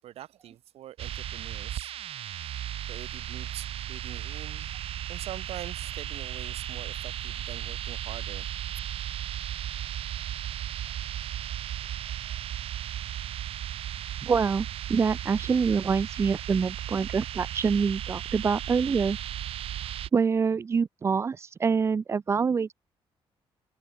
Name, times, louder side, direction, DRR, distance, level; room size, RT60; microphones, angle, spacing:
voice 1, 0.0-1.9 2.9-4.7 5.1-8.5, right 13 dB, 85° right, 6.6 m, -44 dB
sound 1, 1.0-20.1, right 11 dB, 70° right, 1.3 m, -35 dB
voice 2, 14.2-19.2 20.1-22.7, right 5 dB, 25° right, 0.4 m, -26 dB
cardioid pair, 140°, 10 cm